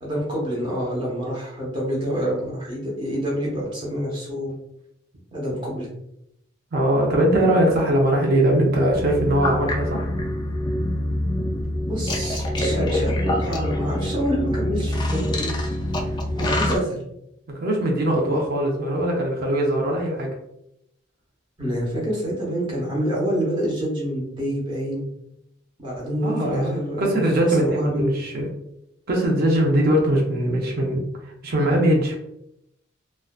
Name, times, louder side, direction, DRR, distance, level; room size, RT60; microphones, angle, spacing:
voice 1, 0.0-4.5 5.3-5.9 11.9-15.6 16.1-17.0 21.6-25.1 25.8-27.2 27.5-28.1, equal, 25° right, -5 dB, 0.8 m, -27 dB
voice 2, 6.7-10.1 17.6-20.3 26.2-28.5 29.1-31.0 31.4-32.2, right 1 dB, 50° right, -1 dB, 0.5 m, -21 dB
sound 1, 8.9-16.8, left 1 dB, 20° left, 0.3 m, -25 dB
2.5 x 2.1 x 2.3 m, 0.81 s
head